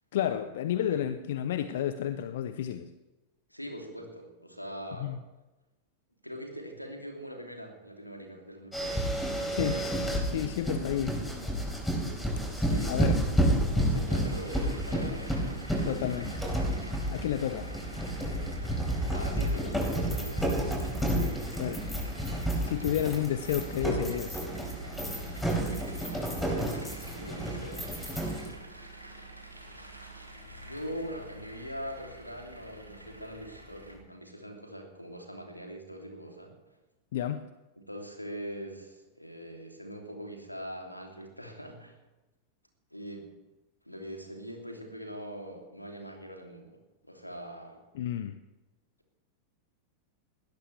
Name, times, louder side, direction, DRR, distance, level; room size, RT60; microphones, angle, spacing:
voice 1, 0.1-2.9 5.0-5.2 9.5-9.8 10.3-11.2 12.9-13.2 15.8-16.4 17.1-17.7 21.6-21.8 22.6-24.4 37.1-37.5 47.9-48.4, left 10 dB, 55° left, 12 dB, 0.7 m, -31 dB
voice 2, 3.5-5.1 6.2-9.9 12.4-13.2 13.7-15.7 19.1-19.8 20.1-21.0 27.0-27.9 30.6-36.5 37.8-42.0 42.9-43.3 43.8-46.8 47.1-47.8, equal, 90° left, 2 dB, 2.9 m, -42 dB
sound 1, 8.7-28.5, equal, 5° left, 4.5 m, -31 dB
sound 2, 14.2-34.0, right 1 dB, 85° right, 2.7 m, -46 dB
20.5 x 17.0 x 3.3 m, 1.1 s
figure-of-eight pair, 90°, 0 cm